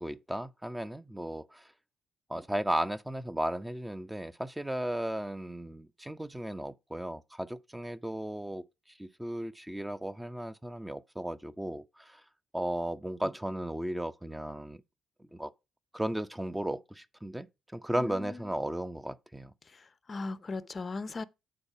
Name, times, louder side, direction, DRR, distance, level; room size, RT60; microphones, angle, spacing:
voice 1, 0.0-1.7 2.3-12.2 12.5-14.8 15.2-15.5 15.9-17.5 17.7-19.5, right 1 dB, 10° right, 0.6 m, -35 dB
voice 2, 17.9-18.5 19.6-21.2, left 3 dB, 35° left, 0.6 m, -39 dB
8.8 x 4.0 x 5.5 m
cardioid pair, 90°, 0 cm